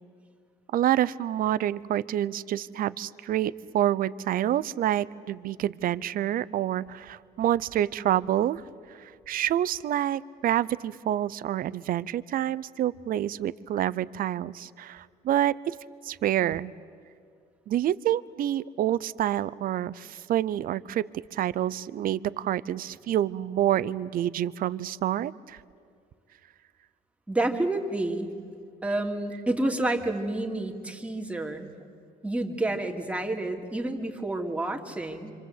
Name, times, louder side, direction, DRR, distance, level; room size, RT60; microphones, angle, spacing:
voice 1, 0.7-8.6 8.9-15.8 16.0-16.7 17.7-25.6, right 12 dB, 55° right, 17 dB, 0.7 m, -27 dB
voice 2, 27.3-28.4 28.8-31.7 32.2-35.3, right 2 dB, 5° right, 1 dB, 2.7 m, -29 dB
27.0 x 26.0 x 8.1 m, 2.2 s
cardioid pair, 110°, 17 cm